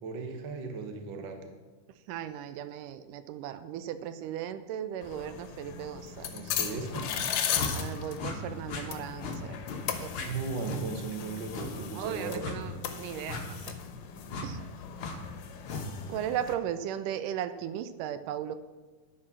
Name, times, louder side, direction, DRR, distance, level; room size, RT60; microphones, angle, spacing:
voice 1, 0.0-1.5 6.3-7.1 10.2-12.4, right 4 dB, 55° right, 5 dB, 1.4 m, -36 dB
voice 2, 2.1-6.3 7.7-9.6 10.0-10.2 11.9-13.7 14.4-14.6 16.1-18.6, right 10 dB, 85° right, 12 dB, 2.2 m, -36 dB
sound 1, 5.0-16.6, left 8 dB, 90° left, 2.5 m, -37 dB
sound 2, 6.9-7.1 7.5-7.7 8.2-8.4 8.7-8.8 9.2-9.4 9.7-9.8 10.1-10.3 10.6-10.8 11.5-11.7 12.4-12.6 13.3-13.4 14.3-14.5 15.0-15.2 15.6-15.8, left 4 dB, 55° left, 1.8 m, -36 dB
10.5 x 8.7 x 6.1 m, 1.3 s
omnidirectional pair, 3.7 m